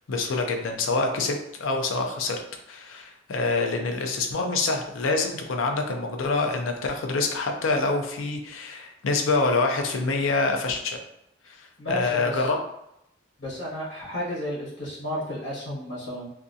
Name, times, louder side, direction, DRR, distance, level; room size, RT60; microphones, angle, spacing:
voice 1, 0.1-2.4 2.7-11.0 11.6-12.6, left 3 dB, 85° left, 3 dB, 0.5 m, -26 dB
voice 2, 11.8-12.5 13.4-16.3, equal, 65° left, -7 dB, 1.1 m, -32 dB
2.6 x 2.3 x 2.6 m, 0.79 s
head